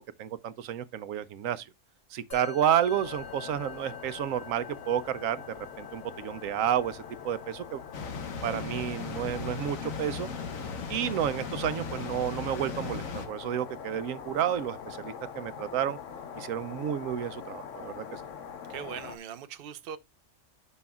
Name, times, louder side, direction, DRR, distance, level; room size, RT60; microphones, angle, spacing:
voice 1, 0.2-1.7 2.1-5.4 5.8-7.8 8.4-10.3 10.9-16.0 16.4-18.2, right 10 dB, 90° right, 1.0 m, -31 dB
Musical instrument, 2.3-11.8, left 8 dB, 45° left, 2.8 m, -49 dB
sound 1, 2.9-19.2, left 7 dB, 70° left, 1.2 m, -44 dB
sound 2, 7.9-13.3, left 5 dB, 90° left, 1.6 m, -37 dB
voice 2, 18.7-20.0, right 9 dB, 50° right, 0.8 m, -40 dB
11.0 x 5.5 x 2.3 m
omnidirectional pair, 1.4 m